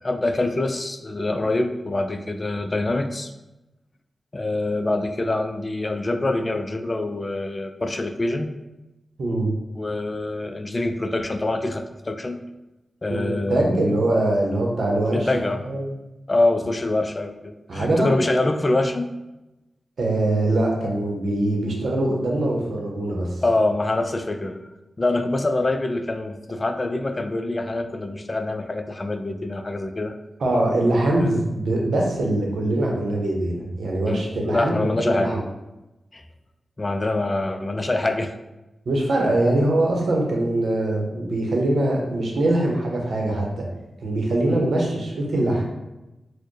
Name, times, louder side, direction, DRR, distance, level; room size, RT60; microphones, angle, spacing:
voice 1, 0.0-3.3 4.3-8.5 9.8-12.4 13.0-13.8 15.1-15.6 16.3-19.1 21.7-21.8 23.4-24.6 25.0-30.2 31.2-31.3 34.1-35.3 36.1-36.2 36.8-38.4 44.5-44.6, left 2 dB, 35° left, 7 dB, 0.3 m, -25 dB
voice 2, 9.2-9.5 13.1-15.3 15.6-15.9 17.7-18.1 20.0-23.3 30.4-35.4 38.9-43.6 44.0-45.6, right 1 dB, 75° right, -1 dB, 0.8 m, -22 dB
4.2 x 2.1 x 3.1 m, 0.99 s
cardioid pair, 50°, 0 cm